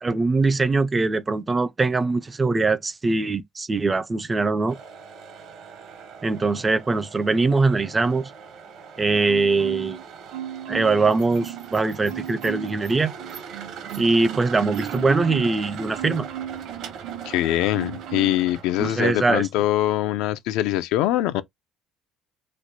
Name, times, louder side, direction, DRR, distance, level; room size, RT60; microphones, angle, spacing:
voice 1, 0.0-4.8 6.2-8.3 9.0-10.0 10.7-13.1 14.0-16.3 18.8-19.5, right 3 dB, 15° right, 0.4 m, -22 dB
sound 1, 4.7-19.0, right 7 dB, 60° right, 1.2 m, -41 dB
Marimba xylophone, 9.3-10.0 10.3-11.7 12.1-12.8 13.2-17.4 17.7-18.4 18.8-19.0, right 10 dB, 85° right, 0.9 m, -35 dB
voice 2, 17.3-21.4, left 14 dB, 80° left, 0.5 m, -23 dB
3.0 x 2.2 x 4.0 m
cardioid pair, 145°, 0 cm